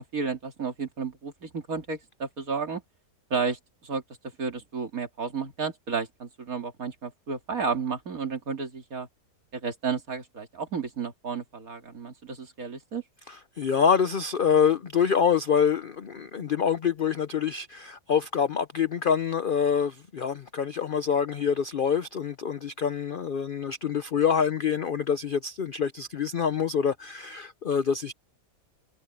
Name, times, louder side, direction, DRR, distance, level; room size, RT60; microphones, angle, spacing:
voice 1, 0.0-2.8 3.3-4.0 4.4-9.1 9.5-13.0, right 5 dB, 55° right, 2.8 m, -32 dB
voice 2, 13.3-28.1, left 7 dB, 55° left, 0.5 m, -26 dB
omnidirectional pair, 1.8 m